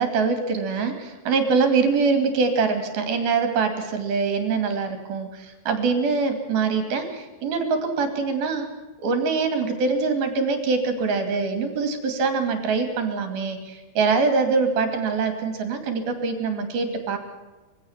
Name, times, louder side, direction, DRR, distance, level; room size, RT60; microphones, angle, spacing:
voice 1, 0.0-8.7 9.0-17.2, right 4 dB, 60° right, 7 dB, 4.3 m, -24 dB
22.5 x 16.5 x 7.3 m, 1.1 s
omnidirectional pair, 4.9 m